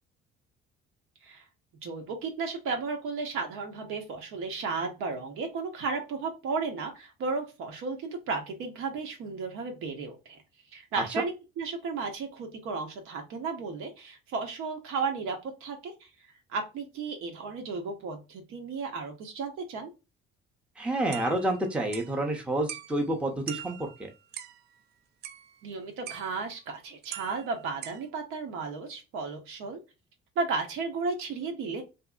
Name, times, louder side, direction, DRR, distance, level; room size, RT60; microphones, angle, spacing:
voice 1, 1.8-10.4 10.7-16.1 16.5-19.9 25.6-29.8 30.4-31.8, right 4 dB, 80° right, 4 dB, 1.0 m, -34 dB
voice 2, 20.8-23.9, right 1 dB, 5° right, 2 dB, 0.6 m, -29 dB
sound 1, 21.1-22.2 22.7-23.1 23.5-24.6 25.2-25.7 26.1-26.5 27.0-28.0, right 10 dB, 50° right, 0.4 m, -42 dB
2.9 x 2.6 x 2.4 m, 0.27 s
cardioid pair, 150°, 21 cm